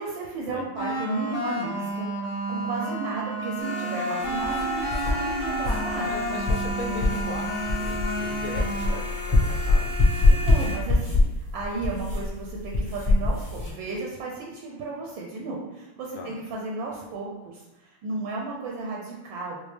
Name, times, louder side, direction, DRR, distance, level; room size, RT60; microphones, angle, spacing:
voice 1, 0.0-2.1 2.5-6.1 8.2-8.3 10.3-19.6, right 3 dB, 75° right, -2 dB, 1.3 m, -34 dB
sound 1, 0.8-9.6, right 1 dB, 65° left, 0.6 m, -31 dB
sound 2, 3.6-10.8, left 2 dB, 25° right, 0.6 m, -36 dB
sound 3, 4.2-13.7, left 2 dB, 15° left, 0.6 m, -24 dB
voice 2, 6.1-7.5 7.7-10.5 16.1-16.4, left 3 dB, 80° left, 2 dB, 1.4 m, -38 dB
5.0 x 2.0 x 3.2 m, 1.0 s
omnidirectional pair, 2.3 m